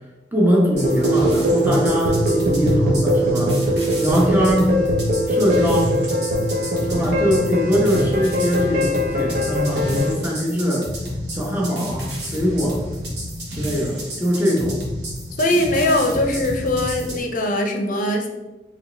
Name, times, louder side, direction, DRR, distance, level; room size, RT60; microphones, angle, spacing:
voice 1, 0.3-3.6 4.0-4.7 5.3-5.9 6.9-10.9 11.3-12.8 13.5-14.8, equal, 10° right, -3 dB, 1.0 m, -22 dB
sound 1, 0.7-10.1, equal, 50° right, 0.9 m, -21 dB
sound 2, 0.8-17.2, equal, 80° right, 1.5 m, -31 dB
voice 2, 15.4-18.3, left 1 dB, 50° left, 3 dB, 0.6 m, -21 dB
4.5 x 3.2 x 3.3 m, 1.1 s
head